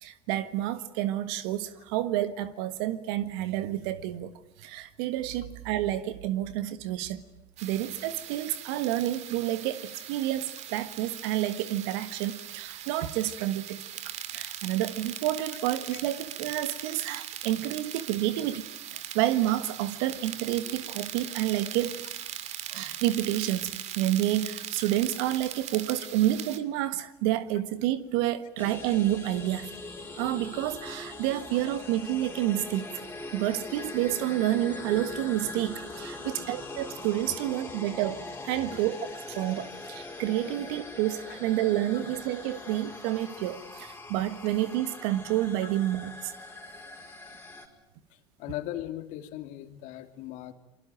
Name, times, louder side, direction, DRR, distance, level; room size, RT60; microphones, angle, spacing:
voice 1, 0.0-4.3 4.6-7.2 7.6-13.8 14.0-18.7 19.1-22.0 22.7-29.7 30.2-32.9 33.3-39.0 39.3-46.3, right 13 dB, 75° right, 12 dB, 1.6 m, -29 dB
sound 1, 7.6-26.6, right 11 dB, 55° right, 2.1 m, -40 dB
sound 2, 28.6-47.7, left 2 dB, 15° left, 5.0 m, -42 dB
voice 2, 48.4-50.5, left 14 dB, 65° left, 7 dB, 2.7 m, -38 dB
28.0 x 23.0 x 9.2 m, 0.85 s
hypercardioid pair, 80°, 14 cm